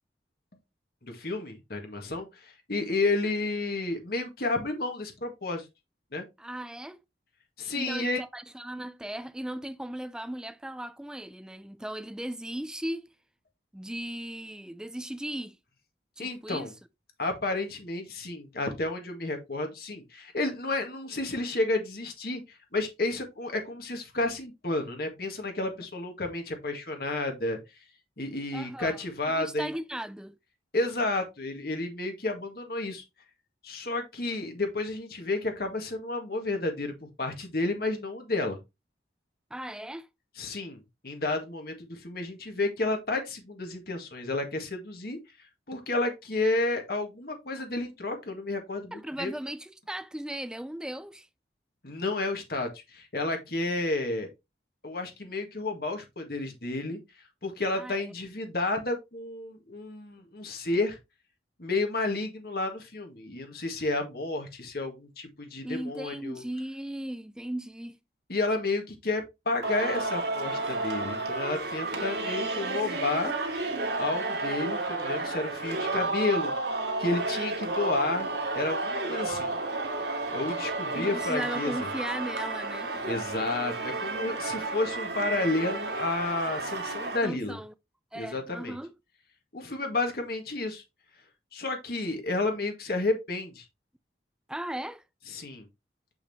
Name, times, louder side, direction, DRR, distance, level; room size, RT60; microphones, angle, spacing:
voice 1, 1.0-5.7 6.1-6.2 7.6-8.2 16.2-16.7 17.2-27.6 28.2-29.7 30.7-33.0 33.6-38.6 40.4-45.2 45.7-49.3 51.8-54.3 54.8-61.0 61.6-66.4 68.3-73.3 73.9-76.5 77.0-78.3 78.5-79.5 80.3-81.9 83.1-87.6 88.2-88.8 89.5-90.8 91.5-93.7 95.3-95.7, left 2 dB, 55° left, 1.7 m, -31 dB
voice 2, 6.4-7.0 7.7-13.1 13.7-15.6 16.2-16.7 28.5-29.0 29.3-30.3 39.5-40.1 48.9-51.3 57.7-58.1 65.6-68.0 80.9-83.1 87.2-87.7 88.1-88.9 94.5-95.0, right 1 dB, 5° right, 0.3 m, -37 dB
Singing, 69.6-87.2, right 2 dB, 70° right, 1.9 m, -32 dB
7.2 x 5.7 x 2.8 m
head